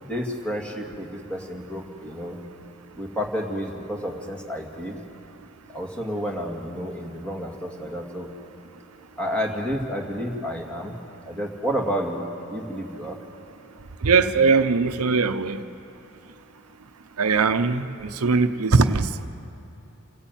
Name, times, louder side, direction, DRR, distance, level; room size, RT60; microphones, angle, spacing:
voice 1, 0.0-2.4 3.0-5.0 5.7-8.3 9.2-11.0 11.2-12.2 12.5-13.2, equal, 5° left, 0 dB, 2.3 m, -30 dB
voice 2, 14.0-15.6 17.2-19.3, right 4 dB, 80° right, 10 dB, 0.8 m, -20 dB
28.5 x 13.5 x 9.1 m, 2.9 s
head